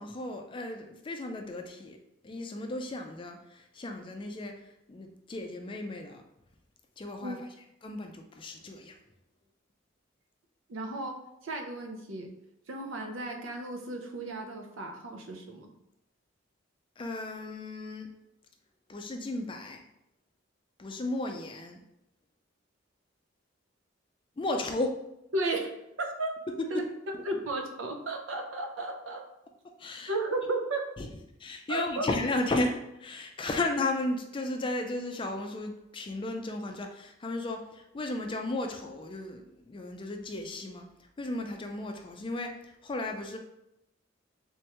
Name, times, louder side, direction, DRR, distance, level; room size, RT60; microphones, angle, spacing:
voice 1, 0.0-2.0 2.2-6.2 7.0-7.5 7.8-9.0 17.0-18.1 18.9-19.8 20.8-21.8 24.4-25.0 26.5-26.9 29.8-30.1 31.0-31.1 31.4-43.4, left 2 dB, 25° left, 4 dB, 0.4 m, -34 dB
voice 2, 10.7-12.3 12.7-15.7 25.3-26.5 26.7-26.8 27.3-29.3 30.1-30.9 31.7-32.1, right 2 dB, 90° right, 4 dB, 0.6 m, -34 dB
3.5 x 3.2 x 2.9 m, 0.84 s
head